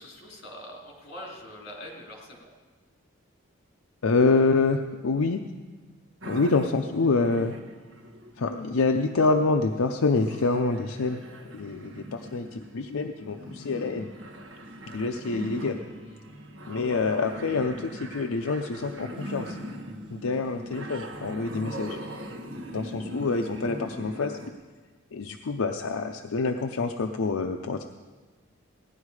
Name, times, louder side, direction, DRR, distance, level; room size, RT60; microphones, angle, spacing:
voice 1, 0.0-2.5, left 1 dB, 50° left, -2 dB, 3.2 m, -43 dB
voice 2, 4.0-5.4 6.3-7.5 8.4-11.2 11.5-14.1 14.9-15.8 16.7-19.6 20.1-22.0 22.7-24.4 25.1-27.8, left 3 dB, 80° left, 4 dB, 0.6 m, -26 dB
sound 1, 6.2-24.5, equal, 60° right, 1.4 m, -41 dB
17.0 x 10.5 x 4.8 m, 1.4 s
head